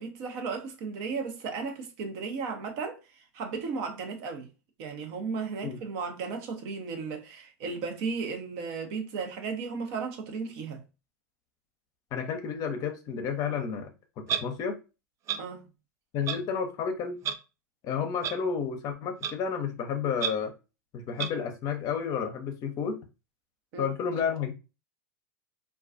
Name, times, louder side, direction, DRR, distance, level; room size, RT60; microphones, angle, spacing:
voice 1, 0.0-4.5 4.8-10.8 15.4-15.7 23.7-23.9, right 5 dB, 55° right, 0.7 m, -35 dB
voice 2, 12.1-13.9 14.2-14.8 16.1-17.2 17.8-20.5 20.9-23.0 23.8-24.5, left 6 dB, 40° left, 0.6 m, -31 dB
Clock, 14.3-14.4 15.3-15.4 16.3-16.4 17.2-17.3 18.2-18.3 19.2-19.3 20.2-20.3 21.2-21.3, right 8 dB, 35° right, 0.3 m, -29 dB
2.3 x 2.3 x 2.4 m
hypercardioid pair, 95°, 9 cm